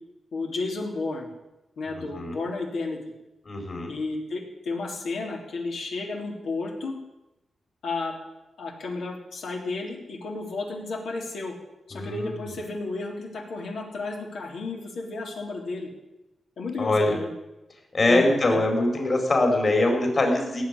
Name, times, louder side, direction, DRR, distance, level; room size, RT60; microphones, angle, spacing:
voice 1, 0.3-1.3 1.8-3.0 3.9-7.0 7.8-8.1 8.6-11.5 11.9-15.9 16.6-17.3 18.1-18.6, left 3 dB, 85° left, 0 dB, 3.5 m, -32 dB
voice 2, 1.9-2.4 3.4-3.9 11.9-12.4 16.8-17.1 17.9-20.6, left 2 dB, 45° left, 2 dB, 4.8 m, -23 dB
17.5 x 7.4 x 10.0 m, 0.99 s
wide cardioid pair, 100°, 0 cm